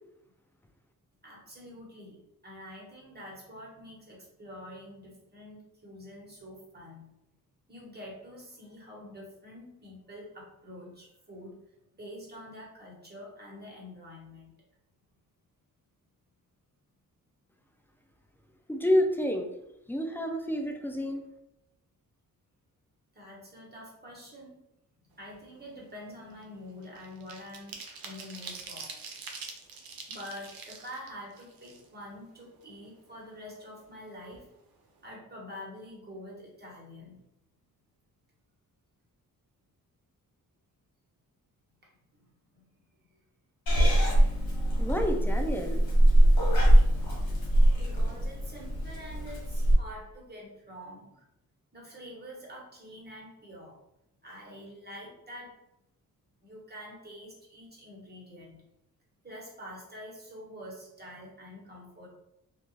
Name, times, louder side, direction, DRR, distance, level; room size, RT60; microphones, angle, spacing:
voice 1, 1.2-7.1 7.7-11.6 12.0-14.5 23.1-24.6 25.2-29.0 30.1-34.4 35.0-37.2 41.8-42.7 47.7-51.2 51.7-53.8 54.2-55.6 56.4-58.6 59.2-62.1, equal, 25° right, -3 dB, 1.2 m, -46 dB
voice 2, 18.7-19.5 19.9-21.3 44.8-45.9, equal, 5° left, 4 dB, 0.4 m, -29 dB
sound 1, 25.2-25.5 25.8-32.2 32.6-32.7 33.0-34.0 34.3-34.5 34.8-35.1, right 4 dB, 75° right, 0.6 m, -45 dB
Purr / Meow, 43.7-49.7, right 1 dB, 85° left, 0.9 m, -23 dB
2.4 x 2.3 x 3.0 m, 0.83 s
cardioid pair, 65°, 36 cm